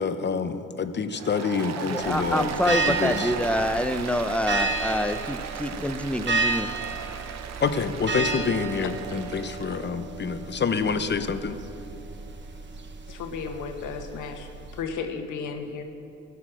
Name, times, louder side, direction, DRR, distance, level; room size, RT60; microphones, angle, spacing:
voice 1, 0.0-3.3 7.6-11.6, left 5 dB, 35° left, 10 dB, 0.7 m, -27 dB
Applause, 1.1-9.8, right 7 dB, 60° right, 0.9 m, -37 dB
voice 2, 1.8-6.7, left 1 dB, 5° left, 10 dB, 0.6 m, -26 dB
sound 1, 2.0-14.8, right 3 dB, 40° right, 1.1 m, -32 dB
voice 3, 13.1-14.5 14.8-15.8, left 5 dB, 80° left, 5 dB, 1.4 m, -34 dB
14.5 x 8.5 x 6.2 m, 2.7 s
cardioid pair, 90°, 30 cm